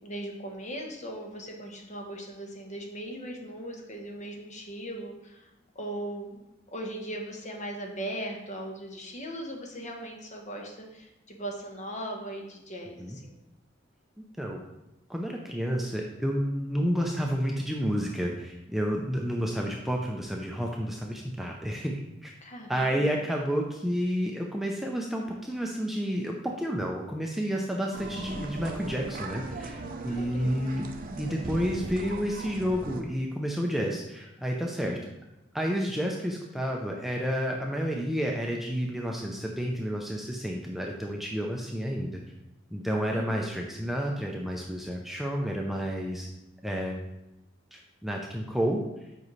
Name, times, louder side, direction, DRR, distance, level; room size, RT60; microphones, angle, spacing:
voice 1, 0.0-5.5 5.7-6.4 6.7-13.3 22.4-23.0 30.0-30.8 34.8-34.9 43.1-43.3, right 1 dB, 35° left, 1 dB, 1.1 m, -39 dB
voice 2, 15.1-22.3 22.7-30.9 31.2-35.0 35.5-42.2 42.7-46.3 46.6-47.0 47.7-48.8, equal, ahead, -1 dB, 0.5 m, -30 dB
sound 1, 27.9-33.0, right 3 dB, 45° right, 0.7 m, -38 dB
7.4 x 5.3 x 3.2 m, 0.93 s
head